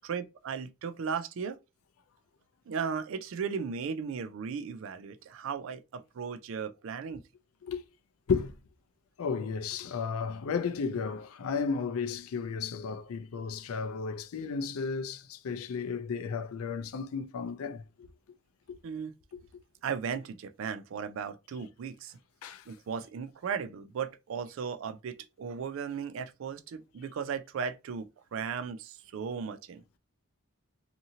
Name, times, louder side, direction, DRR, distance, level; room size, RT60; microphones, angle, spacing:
voice 1, 0.0-1.6 2.7-7.2 18.8-19.1 19.8-22.2 22.7-29.8, right 6 dB, 65° right, 0.3 m, -36 dB
voice 2, 9.2-17.8 18.7-18.8 19.3-19.4 22.4-22.6, left 5 dB, 80° left, 0.4 m, -33 dB
2.7 x 2.5 x 2.7 m
head